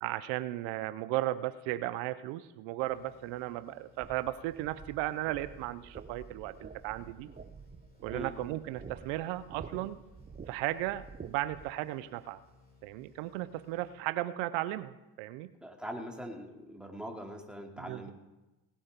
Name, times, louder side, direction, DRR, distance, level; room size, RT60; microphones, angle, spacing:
voice 1, 0.0-7.3 8.0-10.0 10.5-12.4 12.8-15.5 17.8-18.1, right 15 dB, 90° right, 15 dB, 0.6 m, -35 dB
sound 1, 2.8-14.5, left 3 dB, 20° left, 6.2 m, -62 dB
sound 2, 4.0-11.7, right 5 dB, 20° right, 0.5 m, -49 dB
voice 2, 15.6-18.1, equal, ahead, 2 dB, 2.4 m, -42 dB
18.5 x 8.4 x 5.2 m, 1.0 s
supercardioid pair, 60°, 44 cm